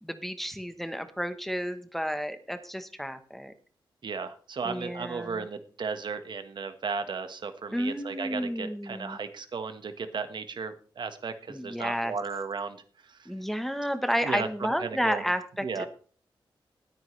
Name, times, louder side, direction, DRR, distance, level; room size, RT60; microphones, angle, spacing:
voice 1, 0.0-3.5 4.6-5.4 7.7-9.2 11.5-12.1 13.3-15.9, equal, ahead, 9 dB, 1.1 m, -31 dB
voice 2, 4.0-12.8 13.0-13.3 14.2-15.2 15.6-15.9, right 5 dB, 60° right, 9 dB, 1.5 m, -35 dB
19.5 x 9.3 x 3.3 m, 0.42 s
wide cardioid pair, 110°, 9 cm